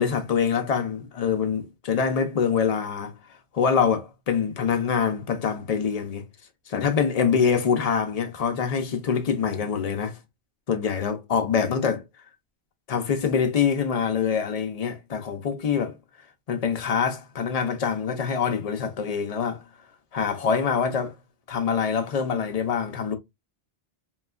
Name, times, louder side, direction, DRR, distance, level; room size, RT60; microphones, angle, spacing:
voice 1, 0.0-3.1 3.5-6.3 6.7-10.2 10.7-12.0 12.9-15.9 16.5-19.6 20.1-21.1 21.5-23.2, left 6 dB, 50° left, 0.5 m, -25 dB
3.0 x 2.3 x 2.2 m
omnidirectional pair, 1.0 m